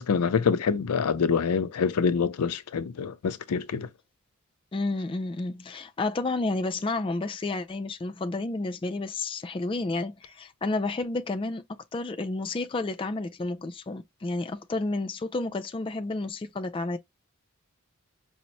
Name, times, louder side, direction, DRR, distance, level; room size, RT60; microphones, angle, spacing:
voice 1, 0.0-3.9, left 6 dB, 90° left, 0.4 m, -26 dB
voice 2, 4.7-17.0, left 2 dB, 25° left, 0.3 m, -31 dB
5.2 x 2.0 x 2.8 m
head